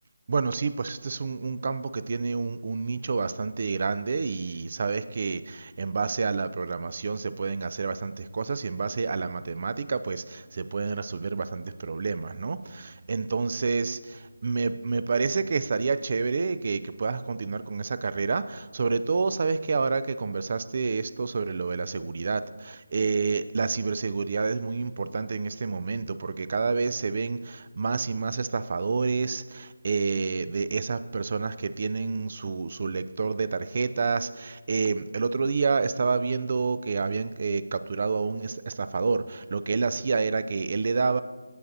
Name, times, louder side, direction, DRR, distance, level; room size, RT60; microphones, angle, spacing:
voice 1, 0.3-41.2, right 4 dB, 45° right, 14 dB, 0.4 m, -28 dB
16.0 x 6.6 x 2.6 m, 1.3 s
figure-of-eight pair, 160°, 0 cm